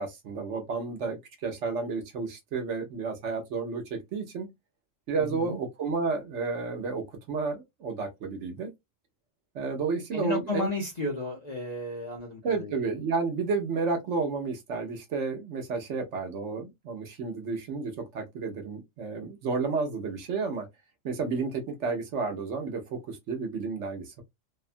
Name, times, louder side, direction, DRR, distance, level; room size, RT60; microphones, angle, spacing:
voice 1, 0.0-4.5 5.1-8.7 9.5-10.7 12.4-20.7 21.0-24.2, right 4 dB, 65° right, 1.0 m, -31 dB
voice 2, 5.2-5.6 10.1-12.7, left 2 dB, 45° left, 0.6 m, -33 dB
2.7 x 2.2 x 2.5 m
omnidirectional pair, 1.3 m